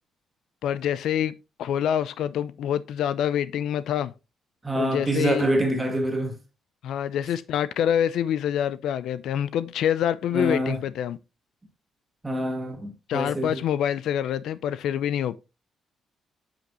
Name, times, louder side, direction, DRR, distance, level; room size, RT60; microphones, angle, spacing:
voice 1, 0.6-4.1 4.8-5.5 6.8-11.2 13.1-15.4, left 10 dB, 80° left, 0.4 m, -26 dB
voice 2, 4.6-6.4 10.3-10.8 12.2-13.6, right 1 dB, 15° right, 2.0 m, -26 dB
7.6 x 5.7 x 2.9 m
cardioid pair, 90°, 0 cm